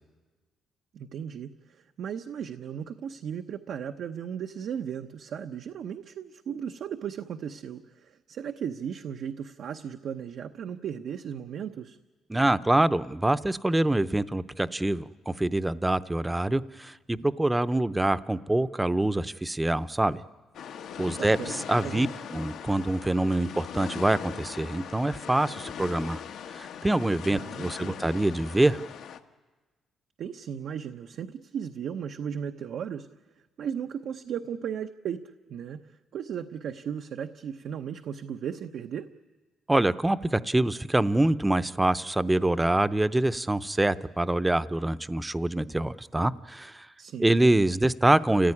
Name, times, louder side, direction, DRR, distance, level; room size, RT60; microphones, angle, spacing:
voice 1, 0.9-12.0 21.1-22.1 27.3-27.9 30.2-33.1 33.6-39.1 47.0-47.4, right 8 dB, 70° right, 6 dB, 0.8 m, -36 dB
voice 2, 12.3-20.2 21.0-22.1 22.3-26.2 26.5-28.8 39.7-46.9 47.2-48.5, right 1 dB, 10° right, 15 dB, 0.7 m, -25 dB
sound 1, 20.5-29.2, left 8 dB, 75° left, 1.3 m, -40 dB
29.5 x 15.5 x 9.9 m, 1.3 s
cardioid pair, 90°, 0 cm